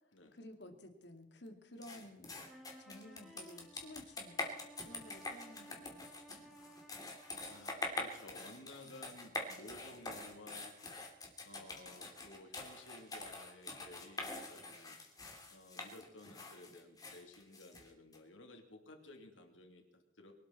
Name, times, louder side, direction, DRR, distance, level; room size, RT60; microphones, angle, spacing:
voice 1, 0.3-2.3 2.8-4.5 4.8-6.6, left 1 dB, 60° left, 6 dB, 2.3 m, -54 dB
sound 1, 1.8-18.2, left 2 dB, 20° left, 2.6 m, -45 dB
sound 2, 2.4-7.8, right 1 dB, ahead, 2.4 m, -58 dB
voice 2, 7.5-10.8 11.4-15.0 15.5-20.3, left 2 dB, 90° left, 4 dB, 3.0 m, -55 dB
24.0 x 12.5 x 4.2 m, 0.96 s
head